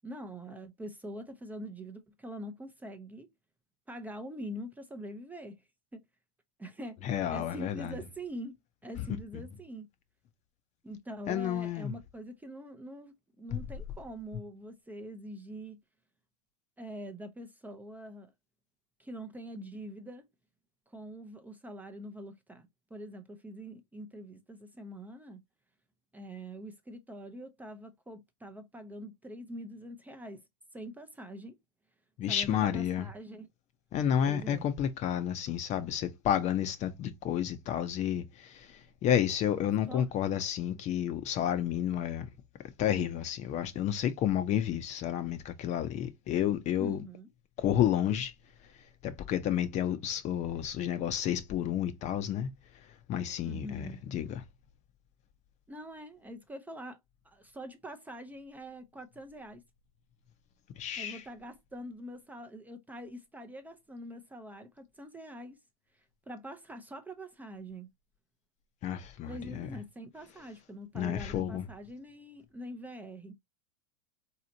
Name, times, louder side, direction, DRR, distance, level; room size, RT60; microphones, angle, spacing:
voice 1, 0.0-3.3 3.9-5.6 5.9-6.0 6.6-7.0 7.3-8.5 8.8-9.9 10.8-15.8 16.8-18.3 19.0-20.2 20.9-25.4 26.1-30.4 30.7-31.6 32.3-33.5 34.3-34.6 39.9-40.1 46.8-47.3 50.5-50.6 53.4-54.0 55.7-57.0 57.2-59.6 61.0-65.6 66.3-67.9 69.3-73.3, equal, 10° right, 0.6 m, -44 dB
voice 2, 7.0-8.0 9.0-9.4 11.3-11.9 13.5-13.6 32.2-33.1 33.9-42.3 42.6-47.0 47.6-48.3 48.6-48.7 49.0-54.4 60.8-61.2 68.8-69.7 70.9-71.7, left 10 dB, 35° left, 0.7 m, -31 dB
4.1 x 2.8 x 2.7 m
hypercardioid pair, 115°, 19 cm